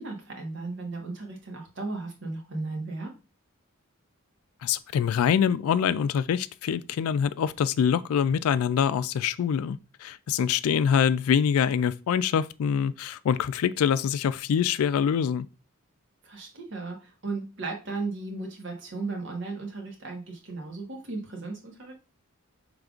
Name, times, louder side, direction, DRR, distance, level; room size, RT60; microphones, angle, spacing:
voice 1, 0.0-3.1 16.2-21.9, right 3 dB, 60° right, 1.2 m, -35 dB
voice 2, 4.6-15.5, left 7 dB, 85° left, 0.3 m, -25 dB
5.2 x 3.3 x 2.4 m
head